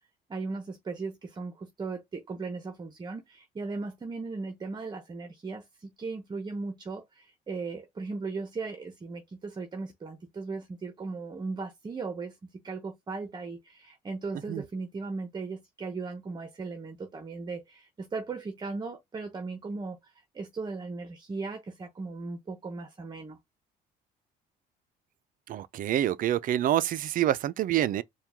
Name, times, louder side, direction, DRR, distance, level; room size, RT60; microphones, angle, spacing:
voice 1, 0.3-23.4, right 4 dB, 25° right, 0.9 m, -37 dB
voice 2, 25.5-28.0, right 12 dB, 55° right, 0.4 m, -27 dB
4.5 x 2.3 x 3.5 m
cardioid pair, 110°, 17 cm